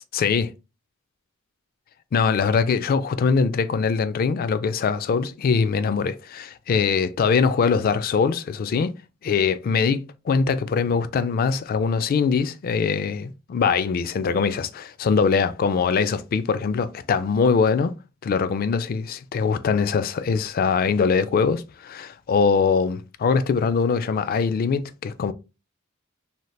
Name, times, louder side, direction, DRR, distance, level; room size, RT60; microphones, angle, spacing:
voice 1, 0.1-0.5 2.1-8.9 9.2-17.9 18.2-25.3, left 5 dB, 45° left, 0.3 m, -22 dB
3.1 x 2.8 x 2.2 m
head